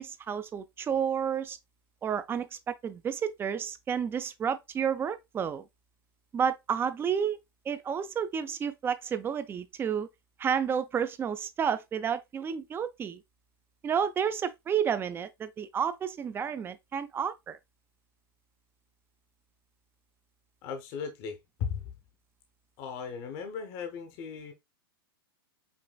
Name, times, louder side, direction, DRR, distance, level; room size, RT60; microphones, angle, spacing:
voice 1, 0.0-1.6 2.0-5.7 6.3-7.4 7.7-10.1 10.4-13.2 13.8-17.6, right 7 dB, 20° right, 0.4 m, -31 dB
voice 2, 20.6-21.9 22.8-24.5, left 6 dB, 45° left, 0.7 m, -37 dB
5.2 x 2.5 x 2.2 m
hypercardioid pair, 125°, 13 cm